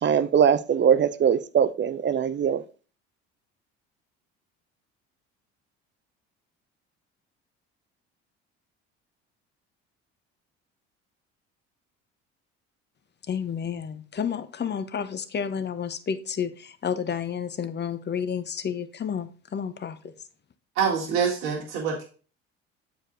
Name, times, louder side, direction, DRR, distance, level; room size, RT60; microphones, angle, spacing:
voice 1, 0.0-2.6, right 8 dB, 35° right, 0.6 m, -21 dB
voice 2, 13.3-20.0, left 7 dB, 30° left, 0.8 m, -31 dB
voice 3, 20.8-22.0, right 6 dB, 80° right, 2.1 m, -25 dB
7.4 x 4.8 x 3.8 m
hypercardioid pair, 65°, 33 cm